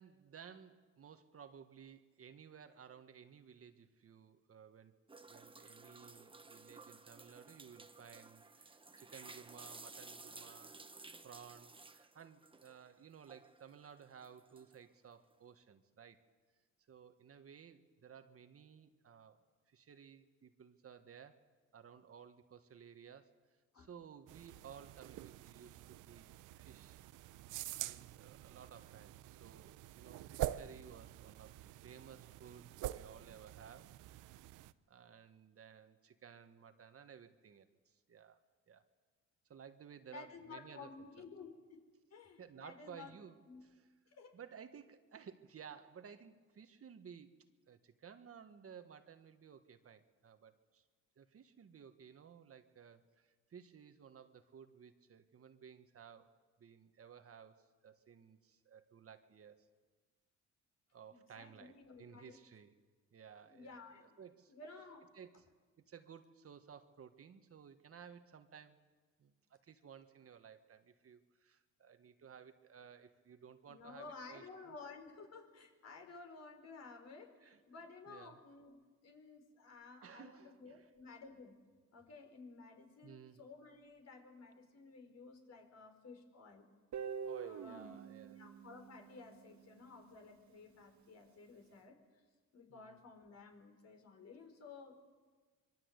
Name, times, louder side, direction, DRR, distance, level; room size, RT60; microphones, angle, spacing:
voice 1, 0.0-5.0 5.3-10.8 11.2-16.2 16.9-19.4 19.7-21.4 21.7-23.3 23.7-26.3 26.6-27.0 27.8-34.4 34.9-38.4 38.7-38.8 39.5-40.9 41.2-41.3 42.4-43.8 44.3-50.8 51.2-56.3 56.6-59.7 60.9-62.7 63.1-64.5 65.1-65.4 65.9-68.8 69.2-74.7 77.4-77.6 78.1-78.4 80.0-81.2 83.0-83.4 87.2-88.4 92.7-93.0, right 7 dB, 50° right, 8 dB, 1.6 m, -57 dB
sound 1, 5.1-12.9 13.2-14.9, right 3 dB, 15° right, 1.3 m, -55 dB
sound 2, 24.3-34.7, right 14 dB, 90° right, 0.8 m, -46 dB
voice 2, 40.1-41.8 42.1-43.2 43.5-43.6 44.1-44.4 61.1-62.4 63.4-64.2 64.5-65.1 73.7-81.6 81.9-86.6 87.4-88.0 88.4-92.0 92.5-95.0, left 4 dB, 55° left, 4 dB, 5.3 m, -54 dB
Guitar, 86.9-89.9, right 7 dB, 70° right, 1.7 m, -46 dB
25.5 x 23.5 x 8.3 m, 1.4 s
cardioid pair, 90°, 30 cm